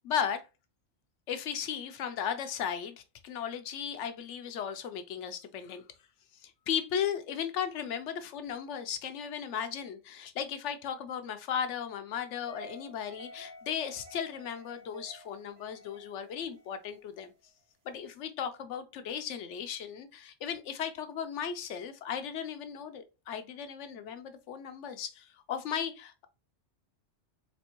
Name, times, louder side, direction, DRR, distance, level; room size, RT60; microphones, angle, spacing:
voice 1, 0.0-0.4 1.3-5.9 6.3-17.3 17.8-26.3, left 8 dB, 80° left, 0.9 m, -36 dB
sound 1, 12.4-17.5, equal, 80° right, 1.5 m, -51 dB
4.3 x 3.0 x 2.9 m
omnidirectional pair, 1.2 m